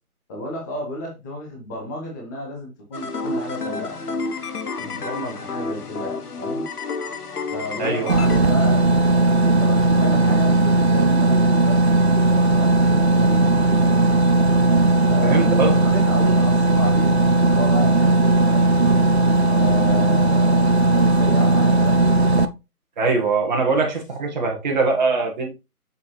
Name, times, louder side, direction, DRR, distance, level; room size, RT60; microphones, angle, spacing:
voice 1, 0.3-4.0 4.8-6.6 7.5-11.8 12.5-14.0 15.1-18.9 19.4-22.0 23.7-23.9, left 1 dB, 10° left, 1.2 m, -32 dB
sound 1, 2.9-8.4, left 3 dB, 80° left, 1.2 m, -30 dB
sound 2, 8.1-22.5, right 2 dB, 45° right, 0.6 m, -17 dB
voice 2, 15.2-15.8 23.0-25.5, right 4 dB, 30° right, 1.4 m, -22 dB
6.7 x 5.3 x 3.2 m
figure-of-eight pair, 160°, 45 cm